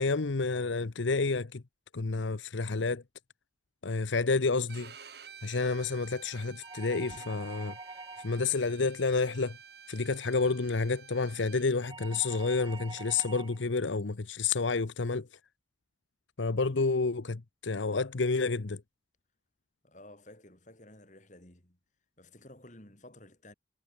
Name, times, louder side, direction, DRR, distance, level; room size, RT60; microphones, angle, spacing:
voice 1, 0.0-1.6 1.9-3.0 3.8-4.9 5.4-7.8 8.2-9.6 9.9-15.3 16.4-18.8, left 4 dB, 85° left, 0.9 m, -29 dB
Bowed string instrument, 4.7-11.7, right 6 dB, 55° right, 3.0 m, -51 dB
sound 1, 6.6-8.5 11.8-13.6, right 3 dB, 25° right, 1.3 m, -46 dB
voice 2, 19.8-21.8 22.2-23.5, left 1 dB, 40° left, 4.1 m, -53 dB
head